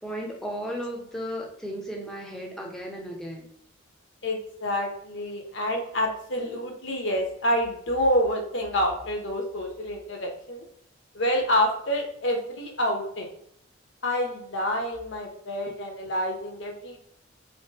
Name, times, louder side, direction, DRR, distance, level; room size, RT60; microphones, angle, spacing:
voice 1, 0.0-3.5, equal, ahead, -1 dB, 0.7 m, -35 dB
voice 2, 4.2-10.6 11.1-13.3 14.0-17.0, equal, 65° left, 2 dB, 0.9 m, -27 dB
3.8 x 3.3 x 2.8 m, 0.69 s
head